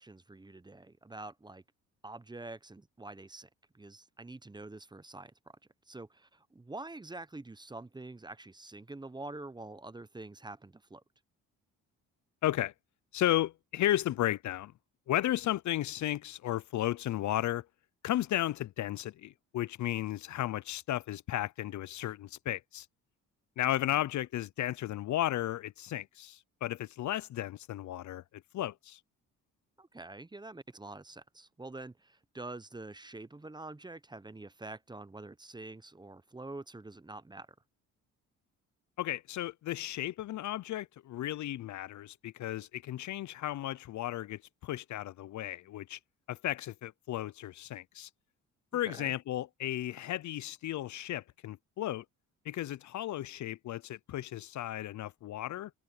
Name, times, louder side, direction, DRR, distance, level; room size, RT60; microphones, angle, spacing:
voice 1, 0.0-1.6 2.0-3.5 3.7-5.3 5.9-11.0 23.9-24.0 29.8-37.5 48.8-49.1, right 2 dB, 15° right, 0.9 m, -46 dB
voice 2, 12.4-12.7 13.1-14.7 15.1-17.7 18.0-22.9 23.6-29.0 39.0-46.0 46.3-48.1 48.7-52.0 52.5-55.7, left 13 dB, 60° left, 0.6 m, -34 dB
supercardioid pair, 75°, 34 cm